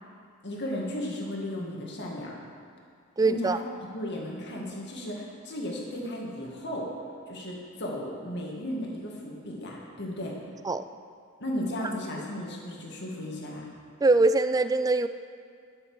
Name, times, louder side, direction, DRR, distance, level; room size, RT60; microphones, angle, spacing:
voice 1, 0.4-2.3 3.2-3.5 3.9-6.9 7.3-10.4 11.4-13.6, left 1 dB, 55° left, -2 dB, 2.0 m, -35 dB
voice 2, 3.2-3.6 10.6-10.8 14.0-15.1, right 3 dB, 15° right, 11 dB, 0.3 m, -22 dB
12.0 x 7.1 x 6.3 m, 2.3 s
head